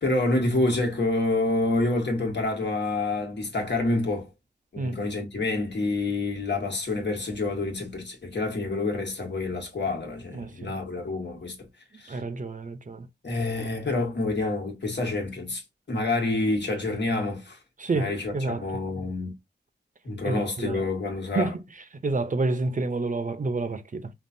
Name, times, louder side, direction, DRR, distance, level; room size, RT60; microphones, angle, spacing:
voice 1, 0.0-4.3 4.7-11.6 12.0-12.2 13.2-15.6 15.9-17.6 17.9-19.3 20.0-21.5, left 2 dB, 80° left, 1.4 m, -27 dB
voice 2, 10.3-10.7 12.1-13.1 17.8-18.7 20.2-20.8 21.3-21.6 22.0-24.1, right 3 dB, 45° right, 0.6 m, -29 dB
5.3 x 2.3 x 2.6 m
wide cardioid pair, 90°, 18 cm